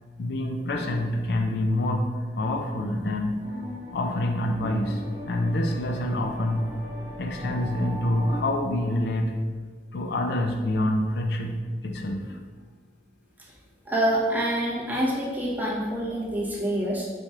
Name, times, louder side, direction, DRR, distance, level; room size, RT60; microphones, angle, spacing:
voice 1, 0.2-3.4 3.9-6.7 7.2-9.3 9.9-11.6 11.8-12.4, left 1 dB, 65° left, 3 dB, 0.4 m, -26 dB
sound 1, 3.4-8.4, equal, 40° right, 1.3 m, -39 dB
voice 2, 13.9-17.0, right 1 dB, 10° right, -6 dB, 0.9 m, -26 dB
4.7 x 4.2 x 2.3 m, 1.5 s
head